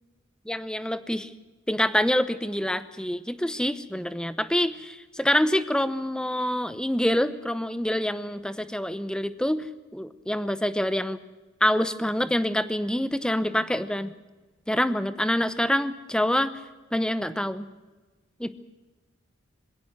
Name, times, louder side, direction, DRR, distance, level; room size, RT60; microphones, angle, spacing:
voice 1, 0.5-1.3 1.7-9.6 9.9-11.2 11.6-14.1 14.7-16.5 16.9-17.7 18.4-18.5, left 1 dB, 5° left, 13 dB, 0.8 m, -26 dB
21.0 x 17.0 x 8.0 m, 1.2 s
head